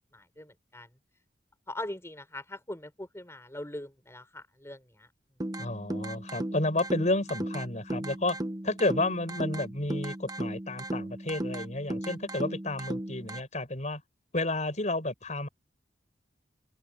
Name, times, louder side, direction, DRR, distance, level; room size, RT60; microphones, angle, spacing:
voice 1, 0.1-0.9 1.7-5.1, left 1 dB, 15° left, 5.2 m, -41 dB
sound 1, 5.4-13.4, right 1 dB, 20° right, 1.1 m, -36 dB
voice 2, 5.6-8.4 8.6-14.0 14.3-15.5, left 2 dB, 45° left, 6.1 m, -31 dB
head